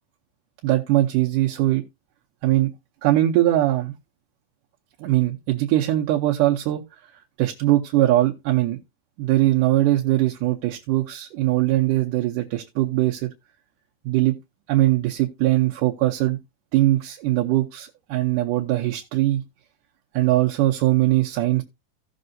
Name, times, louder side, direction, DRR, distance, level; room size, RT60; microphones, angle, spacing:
voice 1, 0.6-1.8 2.4-2.7 3.0-3.9 5.0-6.8 7.4-8.8 9.2-13.3 14.1-14.4 14.7-16.4 16.7-19.4 20.1-21.6, right 15 dB, 75° right, 2.2 m, -21 dB
16.5 x 6.5 x 2.6 m
omnidirectional pair, 4.0 m